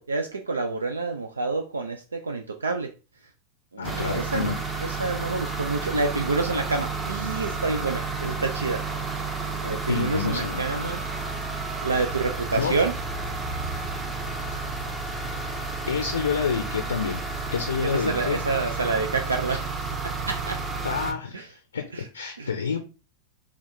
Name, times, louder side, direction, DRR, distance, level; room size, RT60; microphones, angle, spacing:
voice 1, 0.0-2.9 3.7-4.5 4.8-8.8 9.6-11.0 11.8-12.9 17.8-20.6 21.3-21.5 21.9-22.0 22.4-22.5, right 3 dB, 75° right, 4 dB, 0.4 m, -28 dB
voice 2, 3.8-4.6 9.9-10.9 12.6-12.7 15.9-17.2 17.5-18.8 19.5-19.6 20.8-22.8, left 6 dB, 70° left, 5 dB, 0.5 m, -29 dB
sound 1, 3.8-21.1, right 3 dB, 15° right, 0.7 m, -31 dB
3.4 x 2.4 x 4.3 m, 0.32 s
figure-of-eight pair, 90°, 0 cm